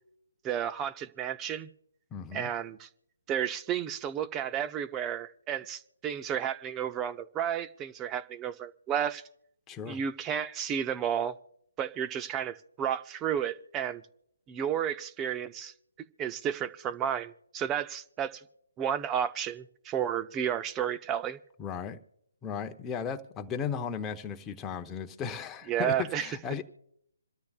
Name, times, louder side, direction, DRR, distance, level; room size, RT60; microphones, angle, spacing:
voice 1, 0.4-1.7 2.3-2.9 3.3-9.2 9.9-11.4 11.8-14.0 14.5-15.7 16.2-18.4 18.8-21.4 25.7-26.3, right 9 dB, 20° right, 0.6 m, -32 dB
voice 2, 2.1-2.5 9.7-10.0 21.6-22.0 22.4-26.6, left 7 dB, 15° left, 0.9 m, -36 dB
27.0 x 13.0 x 2.4 m
figure-of-eight pair, 145°, 0 cm